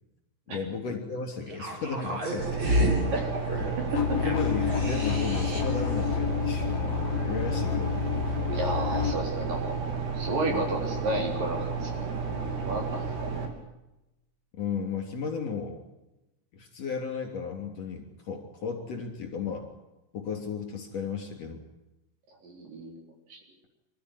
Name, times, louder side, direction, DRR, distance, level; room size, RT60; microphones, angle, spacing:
voice 1, 0.5-2.6 4.1-6.7 7.3-8.4 10.5-10.7 14.6-15.8 16.5-19.7 20.1-21.6, left 5 dB, 40° left, 3 dB, 4.2 m, -34 dB
sound 1, 1.5-5.9 6.1-6.2, equal, 30° right, 4.5 m, -30 dB
sound 2, 2.4-13.5, right 5 dB, 80° right, 5.3 m, -32 dB
sound 3, 3.9-9.1, left 10 dB, 65° left, 1.6 m, -29 dB
voice 2, 8.5-9.7 10.1-11.9 12.6-13.5 22.4-23.0 23.3-23.4, right 2 dB, 55° right, 2 dB, 5.4 m, -32 dB
26.0 x 14.0 x 10.0 m, 0.96 s
omnidirectional pair, 4.7 m